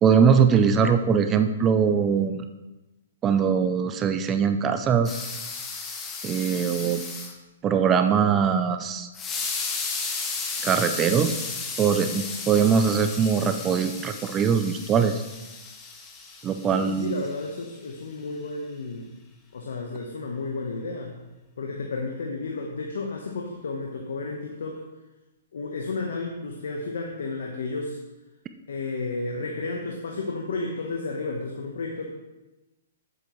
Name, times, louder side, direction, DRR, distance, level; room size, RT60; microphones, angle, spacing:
voice 1, 0.0-2.5 3.2-5.2 6.2-7.0 7.6-9.1 10.6-11.4 11.8-15.2 16.4-17.2, right 7 dB, 20° right, 8 dB, 0.5 m, -22 dB
sound 1, 5.0-7.3 9.1-17.5, left 4 dB, 20° left, 1.0 m, -34 dB
voice 2, 16.7-19.1 19.5-21.2 21.6-24.8 25.5-28.0 28.7-32.1, left 3 dB, 75° left, 1 dB, 1.1 m, -32 dB
9.3 x 7.8 x 3.2 m, 1.0 s
hypercardioid pair, 140°, 0 cm